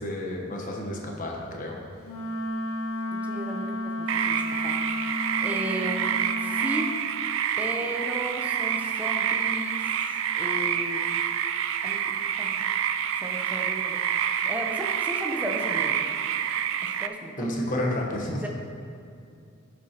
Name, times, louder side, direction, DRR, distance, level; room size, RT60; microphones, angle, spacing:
voice 1, 0.0-1.8 17.4-18.5, left 1 dB, 35° left, 0 dB, 1.2 m, -30 dB
Wind instrument woodwind instrument, 2.0-6.9, left 1 dB, 85° left, 2.0 m, -32 dB
voice 2, 3.1-3.7 4.0-4.8 5.4-6.9 7.6-9.9 10.3-11.1 11.8-12.5 13.2-16.0 16.8-17.5 18.4-18.5, equal, 5° right, 0 dB, 0.8 m, -35 dB
sound 1, 4.1-17.1, right 9 dB, 60° right, 0.3 m, -28 dB
11.5 x 7.1 x 3.0 m, 2.5 s
head